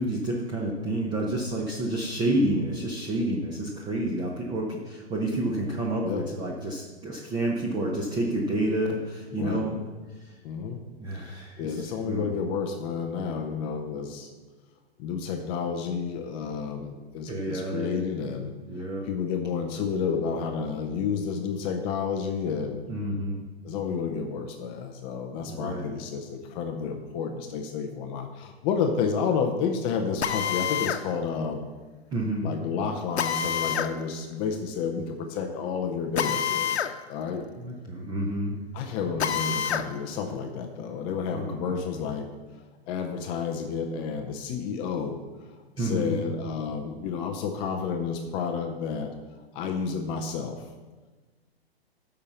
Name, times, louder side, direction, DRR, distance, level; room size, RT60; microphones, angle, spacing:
voice 1, 0.0-9.8 10.1-10.4 11.0-12.3 17.3-18.1 18.7-19.1 22.9-23.4 25.5-26.0 32.1-32.5 37.6-38.6 41.3-41.9 45.8-46.2, right 1 dB, 15° right, -1 dB, 0.7 m, -29 dB
voice 2, 9.3-9.7 10.4-10.8 11.2-14.3 15.0-18.5 19.0-22.9 23.6-31.7 32.4-36.8 37.1-37.4 38.7-42.3 42.9-45.2 45.8-49.1 49.5-50.7, left 6 dB, 15° left, 5 dB, 0.4 m, -30 dB
Drill, 30.2-31.0 33.2-33.9 36.2-36.9 37.3-37.4 39.2-39.9, left 8 dB, 85° left, 0.8 m, -27 dB
8.7 x 5.7 x 7.0 m, 1.3 s
hypercardioid pair, 145°, 32 cm